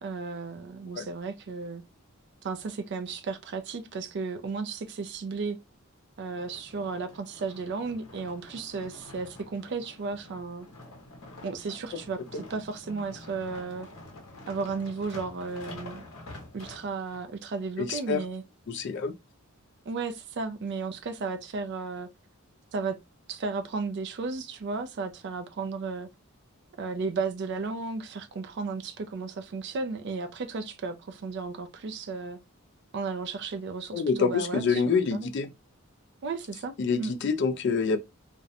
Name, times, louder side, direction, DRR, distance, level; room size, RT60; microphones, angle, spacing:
voice 1, 0.0-1.8 2.4-5.6 6.2-10.7 11.4-13.9 14.5-16.1 16.5-18.4 19.9-22.1 22.7-23.0 23.3-26.1 26.8-32.4 32.9-35.3 36.2-37.1, right 4 dB, 50° right, 0.3 m, -34 dB
sound 1, 6.2-17.2 17.9-18.0, left 1 dB, 70° left, 0.8 m, -47 dB
voice 2, 17.8-18.2 18.7-19.1 33.9-35.5 36.8-38.0, left 5 dB, 50° left, 0.3 m, -26 dB
2.5 x 2.1 x 2.5 m
head